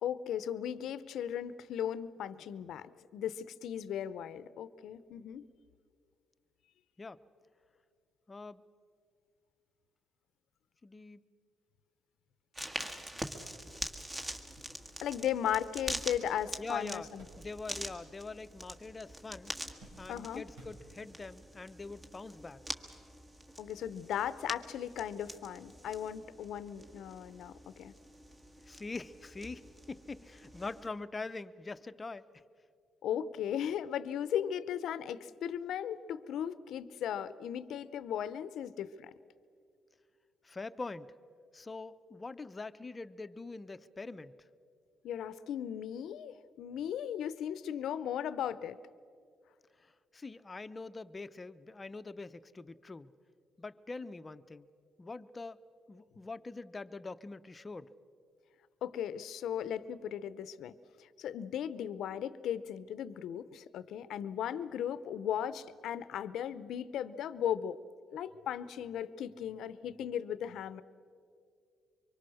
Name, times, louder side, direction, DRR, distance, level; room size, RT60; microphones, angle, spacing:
voice 1, 0.0-2.9 3.1-5.5 15.0-17.2 20.1-20.4 23.6-27.9 33.0-39.1 45.0-48.8 58.8-67.8 68.1-70.8, left 9 dB, 75° left, 15 dB, 0.7 m, -37 dB
voice 2, 8.3-8.6 10.8-11.2 16.6-17.1 17.4-19.5 20.0-22.6 28.6-32.3 40.4-41.1 41.5-44.4 49.8-53.1 53.6-54.7 55.0-55.6 55.9-57.9, left 3 dB, 25° left, 11 dB, 0.7 m, -44 dB
sound 1, 12.5-30.9, right 1 dB, 20° right, 1.7 m, -45 dB
sound 2, 14.4-18.0 18.3-19.0 19.3-21.3 22.1-22.2 23.5-23.7, right 1 dB, 90° right, 6.1 m, -60 dB
24.5 x 23.5 x 6.4 m, 2.3 s
cardioid pair, 90°, 0 cm